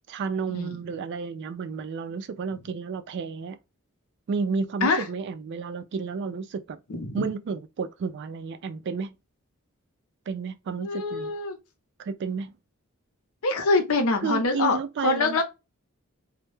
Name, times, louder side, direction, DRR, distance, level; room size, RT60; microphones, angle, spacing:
voice 1, 0.1-3.6 4.3-6.8 7.1-9.2 10.3-11.3 12.0-12.5 14.2-15.4, right 5 dB, 55° right, 0.3 m, -31 dB
voice 2, 6.9-7.3 10.8-11.6 13.4-15.4, left 3 dB, 75° left, 0.6 m, -25 dB
2.2 x 2.0 x 3.0 m
head